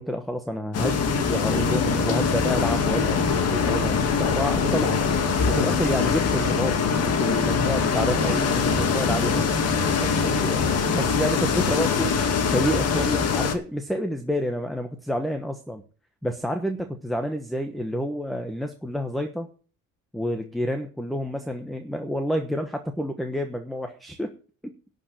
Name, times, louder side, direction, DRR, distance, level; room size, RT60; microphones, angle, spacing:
voice 1, 0.0-5.0 5.5-9.5 9.9-12.1 12.4-15.8 16.2-19.5 20.1-24.3 24.6-24.7, equal, ahead, 7 dB, 1.1 m, -29 dB
sound 1, 0.7-13.5, left 6 dB, 55° left, 2.1 m, -23 dB
Organ, 1.4-12.3, right 10 dB, 70° right, 2.1 m, -36 dB
12.0 x 5.3 x 8.6 m, 0.39 s
cardioid pair, 160°, 31 cm